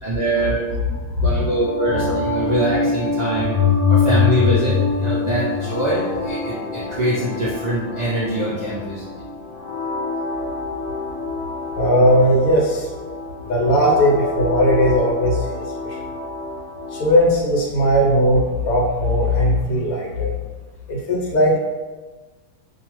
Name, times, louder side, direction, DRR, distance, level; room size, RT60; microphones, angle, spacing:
voice 1, 0.0-0.6 1.2-3.6 3.9-9.0, right 1 dB, 60° right, -9 dB, 0.4 m, -23 dB
sound 1, 1.4-17.3, left 1 dB, 55° left, 1.0 m, -28 dB
voice 2, 2.0-2.5 11.7-12.9 13.5-16.0 16.9-20.3 20.9-21.6, equal, 80° left, -3 dB, 1.2 m, -18 dB
sound 2, 3.3-6.2, left 9 dB, 45° right, 0.8 m, -20 dB
2.6 x 2.3 x 3.0 m, 1.3 s
omnidirectional pair, 1.6 m